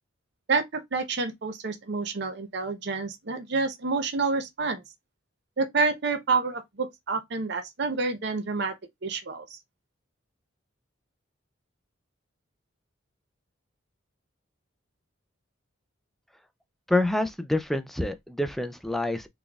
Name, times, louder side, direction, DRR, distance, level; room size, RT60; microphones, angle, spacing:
voice 1, 0.5-4.8 5.6-8.7 9.0-9.6, right 4 dB, 55° right, 0.7 m, -28 dB
voice 2, 16.9-19.3, left 1 dB, ahead, 0.3 m, -27 dB
4.1 x 3.3 x 2.3 m
head